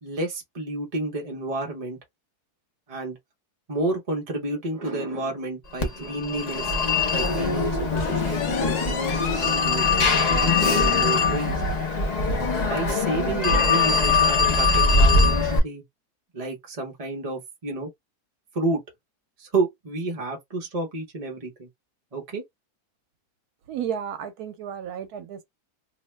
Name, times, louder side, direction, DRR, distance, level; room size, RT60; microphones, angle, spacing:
voice 1, 0.0-2.0 2.9-3.2 3.7-6.9 7.1-11.6 12.7-15.8 16.3-17.9 18.5-18.8 19.4-21.7 22.1-22.4, right 2 dB, 35° right, 0.6 m, -30 dB
Telephone, 5.8-15.6, left 4 dB, 40° left, 0.6 m, -22 dB
sound 1, 8.0-9.7 10.1-10.2 10.6-10.7 11.1-11.2 12.2-12.3, left 5 dB, 80° left, 1.2 m, -34 dB
voice 2, 23.7-25.4, right 8 dB, 80° right, 1.1 m, -32 dB
2.8 x 2.1 x 3.1 m
omnidirectional pair, 1.6 m